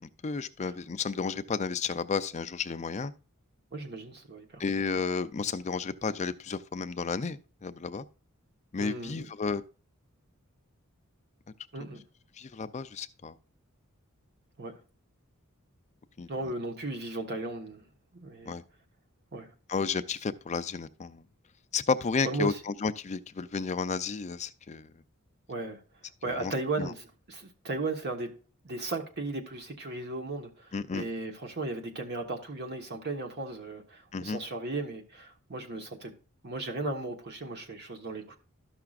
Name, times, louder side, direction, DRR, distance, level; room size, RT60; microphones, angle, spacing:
voice 1, 0.0-3.1 4.6-8.0 8.7-9.6 12.4-13.3 16.2-16.3 18.5-18.6 19.7-21.2 21.7-24.9 26.3-26.9 30.7-31.0 34.1-34.4, left 5 dB, 30° left, 0.4 m, -32 dB
voice 2, 3.7-4.6 8.8-9.3 11.7-12.0 14.6-14.8 16.3-17.8 18.1-18.6 19.3-19.5 22.2-22.6 25.5-25.8 26.2-28.3 28.6-36.1 36.4-38.4, right 2 dB, 50° right, 1.3 m, -36 dB
13.0 x 5.9 x 2.4 m
head